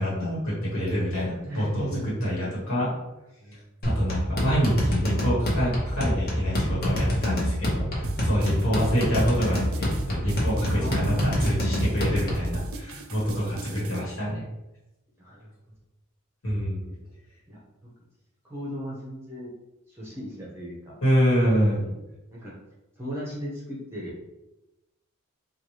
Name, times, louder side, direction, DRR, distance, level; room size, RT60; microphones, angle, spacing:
voice 1, 0.0-2.9 3.8-14.4 16.4-16.9 21.0-21.8, equal, 70° left, -7 dB, 1.4 m, -26 dB
voice 2, 1.4-2.1 3.4-3.6 8.3-8.6 10.7-11.4 15.2-15.5 16.9-17.0 17.5-17.6 18.5-19.5 19.9-21.0 21.7-21.9 22.3-22.5 23.0-24.1, equal, 10° right, -6 dB, 0.7 m, -36 dB
sound 1, 3.8-12.6, equal, 45° left, 0.9 m, -26 dB
sound 2, 8.0-14.0, right 2 dB, 70° right, 0.5 m, -37 dB
4.2 x 2.3 x 3.1 m, 0.96 s
head